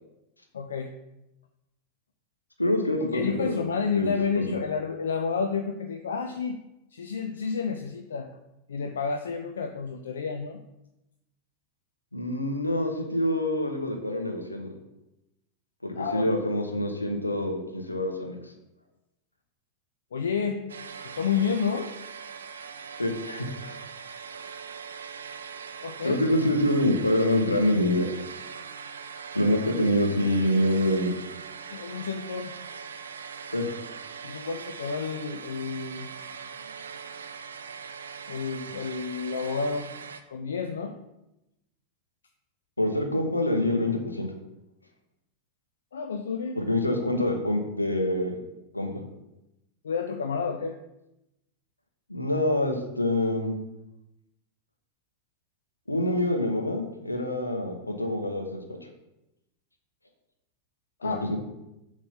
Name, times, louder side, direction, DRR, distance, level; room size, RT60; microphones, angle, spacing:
voice 1, 0.5-0.9 3.1-6.6 6.9-8.3 8.7-10.6 16.0-16.2 20.1-20.6 21.0-21.9 25.8-26.3 31.7-32.5 34.2-36.1 38.3-39.9 40.3-40.9 45.9-46.6 49.8-50.8 61.0-61.4, left 5 dB, 65° left, 5 dB, 0.4 m, -30 dB
voice 2, 2.6-3.6 3.9-4.5 12.1-14.7 15.8-18.5 23.0-23.8 26.0-28.1 29.3-31.1 33.5-33.7 42.8-44.3 46.6-48.4 48.7-49.0 52.1-53.5 55.9-58.6 61.0-61.4, left 1 dB, 85° left, 3 dB, 1.0 m, -26 dB
sound 1, 20.7-40.2, right 6 dB, 70° right, 0.4 m, -41 dB
6.9 x 3.2 x 5.6 m, 0.90 s
figure-of-eight pair, 90°, 0 cm